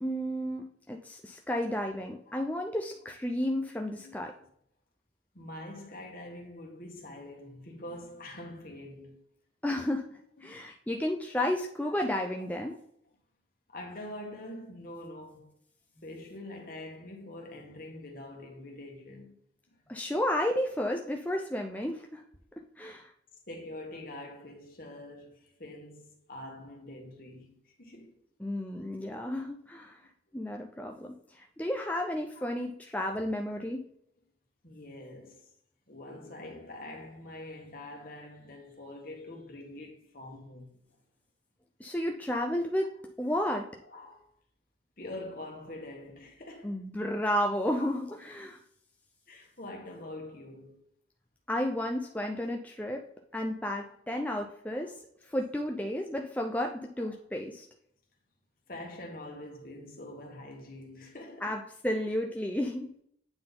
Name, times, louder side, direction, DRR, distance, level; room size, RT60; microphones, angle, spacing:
voice 1, 0.0-4.3 9.6-10.1 10.4-12.8 19.9-22.2 22.8-23.1 28.4-30.0 30.3-33.8 41.8-43.7 46.6-48.6 51.5-53.0 53.3-54.9 55.2-57.7 61.4-63.0, left 1 dB, 10° left, 0.5 m, -32 dB
voice 2, 5.3-9.2 10.4-10.6 11.8-12.1 13.7-15.6 16.0-19.4 19.7-19.9 21.0-21.4 21.7-21.8 23.5-28.1 32.3-32.7 34.6-35.5 35.9-41.0 43.2-43.4 43.8-44.3 45.0-46.8 47.8-48.2 48.5-48.6 49.3-50.8 52.0-52.4 53.4-53.5 53.8-54.3 54.7-54.9 57.0-57.1 58.7-61.6 61.9-62.1 62.6-62.7, left 1 dB, 50° left, 1.7 m, -45 dB
8.9 x 3.8 x 3.8 m
head